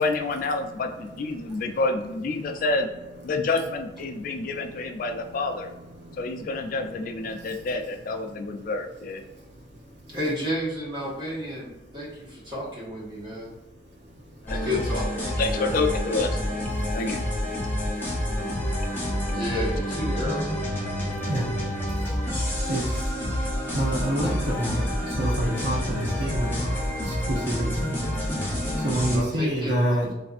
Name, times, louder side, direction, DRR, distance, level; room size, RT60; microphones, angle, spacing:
voice 1, 0.0-2.9 3.2-5.7 6.2-9.2 14.4-14.6 15.4-16.4 16.9-17.2, left 3 dB, 50° left, 6 dB, 0.3 m, -28 dB
voice 2, 1.4-1.8 2.4-2.5 4.1-4.6 5.1-5.4 6.0-6.5 7.3-7.6 16.7-16.9 17.7-17.8 21.3-21.5 22.0-28.0 28.8-30.1, right 1 dB, 75° right, -1 dB, 0.7 m, -29 dB
voice 3, 10.1-13.5 14.6-16.1 19.3-20.5 29.1-30.1, left 1 dB, 30° right, -7 dB, 1.5 m, -32 dB
sound 1, 14.5-29.2, equal, 10° left, 0.8 m, -28 dB
3.2 x 2.6 x 2.4 m, 1.0 s
head